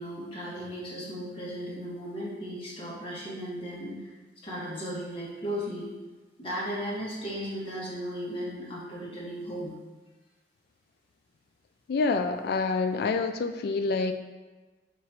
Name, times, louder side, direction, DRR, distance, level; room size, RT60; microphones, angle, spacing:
voice 1, 0.0-4.0 4.4-5.9 6.4-9.7, equal, 30° left, -6 dB, 1.2 m, -36 dB
voice 2, 11.9-14.1, left 4 dB, 60° left, 8 dB, 0.3 m, -27 dB
3.7 x 3.0 x 4.5 m, 1.3 s
head